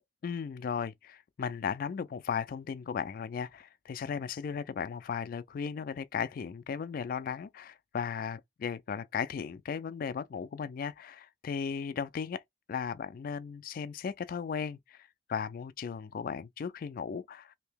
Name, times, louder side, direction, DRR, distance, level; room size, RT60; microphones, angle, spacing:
voice 1, 0.2-12.4 12.7-17.6, left 6 dB, 50° left, 0.3 m, -36 dB
2.8 x 2.7 x 3.4 m
head